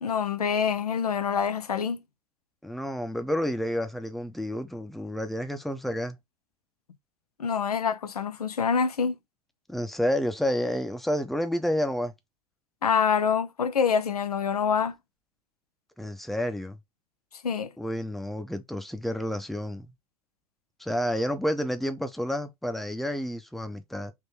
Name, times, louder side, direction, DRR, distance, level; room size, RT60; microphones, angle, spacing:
voice 1, 0.0-2.0 7.4-9.2 12.8-15.0 17.4-17.7, left 6 dB, 85° left, 0.6 m, -26 dB
voice 2, 2.6-6.2 9.7-12.1 16.0-16.8 17.8-19.9 20.8-24.1, equal, ahead, 0.8 m, -30 dB
3.7 x 2.9 x 4.3 m
figure-of-eight pair, 85°, 19 cm